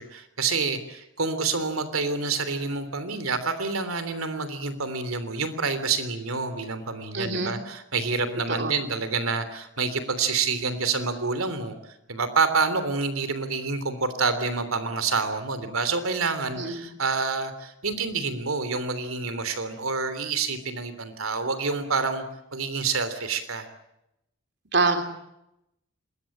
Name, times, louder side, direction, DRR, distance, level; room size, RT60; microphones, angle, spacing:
voice 1, 0.0-22.2 22.5-23.7, right 4 dB, 90° right, 11 dB, 3.3 m, -28 dB
voice 2, 7.1-7.5 8.6-8.7 16.6-16.8 24.7-25.0, right 3 dB, 55° right, 6 dB, 3.3 m, -25 dB
27.0 x 21.5 x 8.8 m, 0.85 s
head